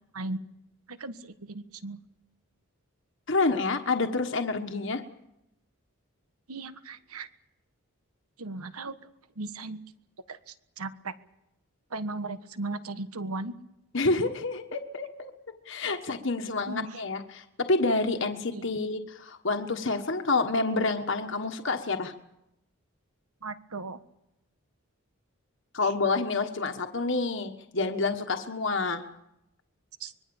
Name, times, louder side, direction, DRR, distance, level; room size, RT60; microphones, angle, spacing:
voice 1, 0.9-2.0 6.5-7.3 8.4-9.0 9.3-9.8 10.3-11.1 11.9-13.5 16.6-17.0 18.5-18.8 23.4-24.0 30.0-30.1, right 2 dB, 85° right, 11 dB, 1.5 m, -37 dB
voice 2, 3.3-5.0 13.9-15.3 15.6-22.1 25.7-29.0, left 3 dB, 55° left, 5 dB, 1.4 m, -28 dB
25.0 x 22.0 x 7.1 m, 0.85 s
head